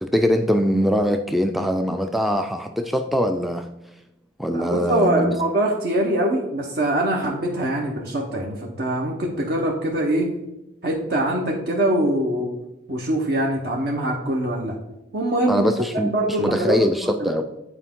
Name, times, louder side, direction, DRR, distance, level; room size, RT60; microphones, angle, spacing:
voice 1, 0.0-3.7 4.4-5.4 15.5-17.4, equal, ahead, 6 dB, 0.3 m, -22 dB
voice 2, 4.5-10.3 10.8-12.5 12.9-14.7 15.1-15.6 16.1-16.9 17.2-17.3, right 1 dB, 55° right, -1 dB, 0.9 m, -23 dB
8.3 x 4.5 x 3.7 m, 0.93 s
head